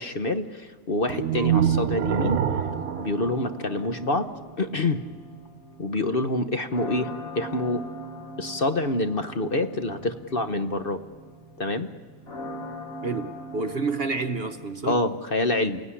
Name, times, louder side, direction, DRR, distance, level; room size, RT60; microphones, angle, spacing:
voice 1, 0.0-2.4 3.0-4.3 4.6-5.0 5.8-7.1 7.3-7.8 8.4-11.0 11.6-11.9 14.9-15.8, left 2 dB, 40° left, 9 dB, 1.1 m, -26 dB
sound 1, 1.1-4.2, right 9 dB, 70° right, 1.3 m, -26 dB
sound 2, 2.5-14.7, equal, 65° left, 2.8 m, -41 dB
voice 2, 13.0-15.0, right 4 dB, 45° right, 9 dB, 1.0 m, -29 dB
29.5 x 17.0 x 9.9 m, 1.5 s
omnidirectional pair, 1.6 m